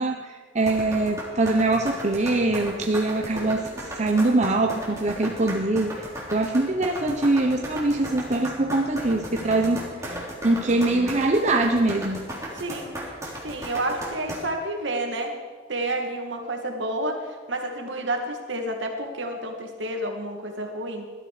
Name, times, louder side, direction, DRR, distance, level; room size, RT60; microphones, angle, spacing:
voice 1, 0.0-12.2, right 2 dB, 40° right, 3 dB, 0.9 m, -23 dB
sound 1, 0.6-14.4, right 1 dB, 15° right, 3.6 m, -35 dB
voice 2, 12.5-13.0 13.4-15.3 15.7-21.1, right 1 dB, 70° right, 3 dB, 2.4 m, -30 dB
19.5 x 12.5 x 5.1 m, 1.5 s
head